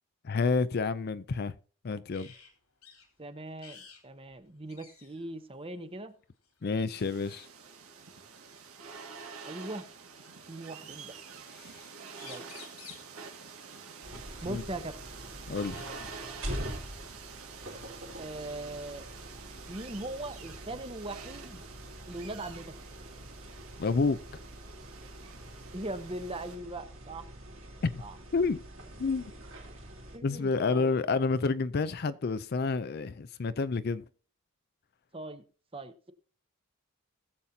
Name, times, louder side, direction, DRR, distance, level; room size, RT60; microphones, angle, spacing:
voice 1, 0.2-1.5 1.8-2.3 6.6-7.5 11.6-11.8 14.1-14.6 15.5-15.9 23.8-24.2 27.8-27.9 28.3-28.6 29.0-29.3 30.2-34.0, left 4 dB, 45° left, 0.4 m, -29 dB
sound 1, 2.1-2.5 2.8-3.1 3.6-4.0 4.3-4.4 4.7-5.3 6.4-6.7 8.4-8.5 9.6-10.4 11.8-11.9 12.1-13.1 15.1-15.2 15.6-16.6, left 6 dB, 85° left, 3.1 m, -51 dB
voice 2, 3.2-6.1 9.5-9.9 10.5-11.2 12.2-12.4 14.4-14.9 18.2-19.0 19.7-21.6 22.1-22.7 25.7-27.2 28.0-28.1 30.1-31.0 35.1-35.4 35.7-36.1, right 1 dB, 25° right, 0.9 m, -40 dB
sound 2, 6.9-26.6, right 5 dB, 85° right, 2.0 m, -48 dB
sound 3, 14.0-30.2, equal, 65° right, 3.5 m, -45 dB
20.5 x 7.3 x 2.8 m
head